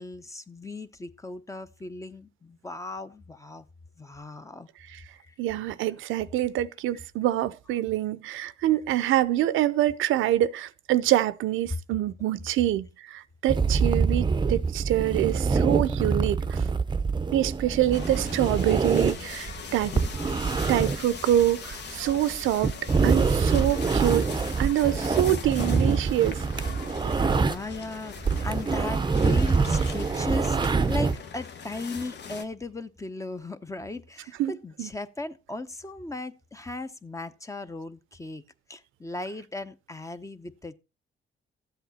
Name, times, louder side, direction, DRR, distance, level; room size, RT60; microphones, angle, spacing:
voice 1, 0.0-3.7 4.0-4.7 5.2-5.3 27.0-38.4 38.7-40.7, left 2 dB, 15° left, 0.8 m, -37 dB
voice 2, 5.4-16.6 17.3-19.9 20.7-22.7 23.0-24.3 24.6-26.4 34.4-34.5 34.8-34.9, right 13 dB, 85° right, 0.6 m, -25 dB
sound 1, 13.5-27.8 28.1-31.2, right 4 dB, 25° right, 0.6 m, -25 dB
sound 2, 17.9-32.4, left 6 dB, 60° left, 1.1 m, -40 dB
Door, 25.0-26.3, left 5 dB, 35° left, 1.8 m, -41 dB
12.5 x 8.0 x 4.1 m
cardioid pair, 90°, 20 cm